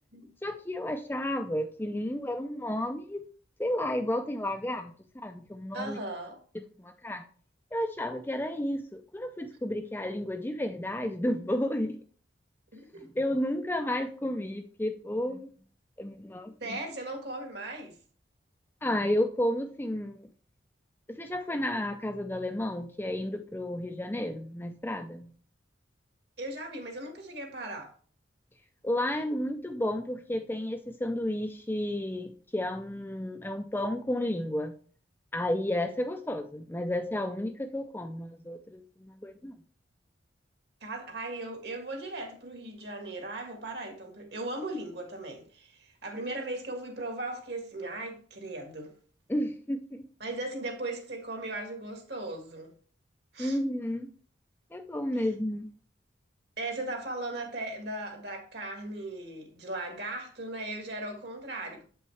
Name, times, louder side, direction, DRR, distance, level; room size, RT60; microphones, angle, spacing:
voice 1, 0.4-3.2 3.6-4.9 5.2-6.0 6.8-7.2 7.7-12.0 13.2-15.5 16.0-16.8 18.8-20.3 21.1-25.3 28.8-34.7 35.3-39.5 49.3-50.0 53.4-54.1 54.7-55.7, left 1 dB, 10° left, 0.4 m, -32 dB
voice 2, 5.7-6.4 12.7-13.0 16.6-17.9 26.4-27.9 40.8-48.9 50.2-52.7 53.3-53.6 55.1-55.3 56.6-61.8, right 2 dB, 60° right, 1.7 m, -38 dB
7.9 x 5.5 x 3.2 m
head